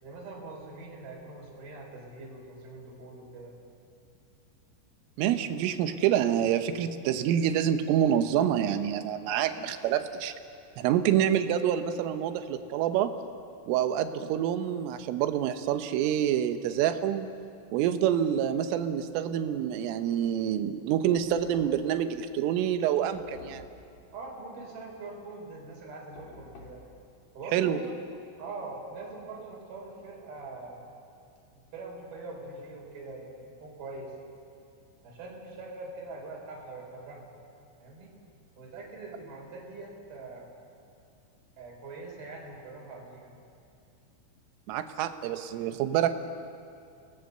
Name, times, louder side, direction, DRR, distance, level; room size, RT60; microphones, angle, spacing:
voice 1, 0.0-3.5 24.1-26.8 27.3-28.0 28.4-30.8 31.6-34.1 35.0-37.3 37.8-38.1 38.6-40.5 41.6-43.3, right 3 dB, 50° right, -2 dB, 6.1 m, -43 dB
voice 2, 5.2-10.3 10.8-13.1 13.7-17.3 17.7-23.7 27.5-27.8 44.7-46.1, right 10 dB, 80° right, 9 dB, 3.5 m, -27 dB
Knock, 21.2-22.0 23.1-23.9 26.2-26.9, left 3 dB, 45° left, 3.7 m, -49 dB
29.5 x 19.5 x 6.8 m, 2.6 s
omnidirectional pair, 5.9 m